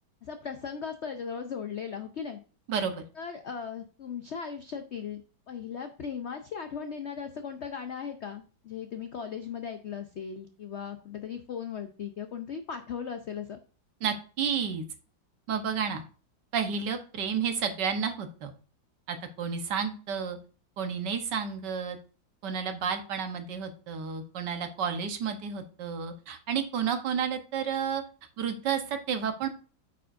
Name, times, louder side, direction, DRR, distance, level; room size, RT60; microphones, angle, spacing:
voice 1, 0.2-2.4 3.2-5.2 5.5-13.6, left 7 dB, 85° left, 7 dB, 0.6 m, -37 dB
voice 2, 2.7-3.0 14.0-14.8 15.5-16.0 16.5-18.5 19.1-20.4 20.8-22.0 22.4-28.0 28.4-29.5, right 7 dB, 65° right, 7 dB, 1.6 m, -31 dB
8.9 x 6.8 x 2.6 m, 0.36 s
omnidirectional pair, 2.1 m